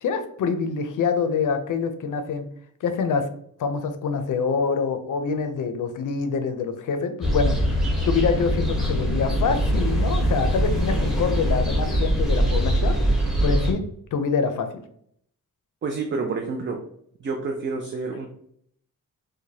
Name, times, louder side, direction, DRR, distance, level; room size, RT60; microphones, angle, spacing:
voice 1, 0.0-2.4 2.8-3.3 3.6-7.6 8.1-13.0 13.4-13.8 14.1-14.7, left 5 dB, 65° left, 8 dB, 0.5 m, -25 dB
sound 1, 7.2-13.7, equal, ahead, 0.8 m, -22 dB
voice 2, 15.8-16.8 17.2-18.3, right 4 dB, 35° right, 3 dB, 0.4 m, -28 dB
4.7 x 2.2 x 2.7 m, 0.67 s
wide cardioid pair, 165°, 33 cm